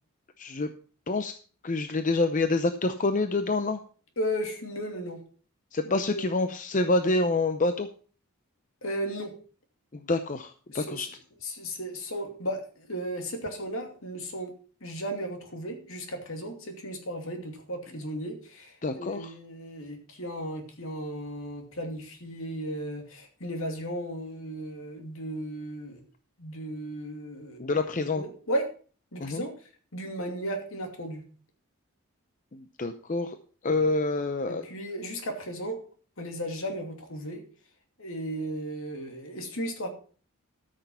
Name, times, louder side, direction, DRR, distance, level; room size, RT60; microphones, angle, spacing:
voice 1, 0.4-0.7 1.1-1.3 1.6-3.8 5.7-7.9 9.9-11.1 18.8-19.3 27.6-28.2 29.2-29.4 32.5-33.4 33.6-34.7, left 2 dB, 35° left, 8 dB, 0.6 m, -27 dB
voice 2, 4.2-5.2 5.9-6.3 8.8-9.3 10.7-11.1 11.4-14.5 14.8-26.0 26.4-27.6 28.2-28.6 29.1-29.5 29.9-31.2 34.5-35.8 36.2-37.4 38.0-39.9, equal, 65° left, 4 dB, 2.7 m, -35 dB
13.5 x 6.5 x 5.5 m, 0.41 s
head